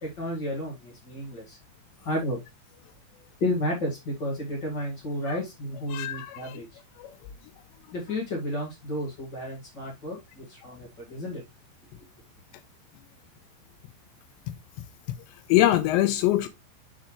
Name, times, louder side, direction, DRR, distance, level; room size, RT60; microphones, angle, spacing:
voice 1, 0.0-1.6 2.0-2.4 3.4-6.8 7.9-11.4, left 1 dB, 65° left, 1.1 m, -32 dB
voice 2, 5.9-6.6 7.0-7.1 15.5-16.5, left 14 dB, 90° left, 2.6 m, -23 dB
7.1 x 6.4 x 3.2 m
omnidirectional pair, 5.7 m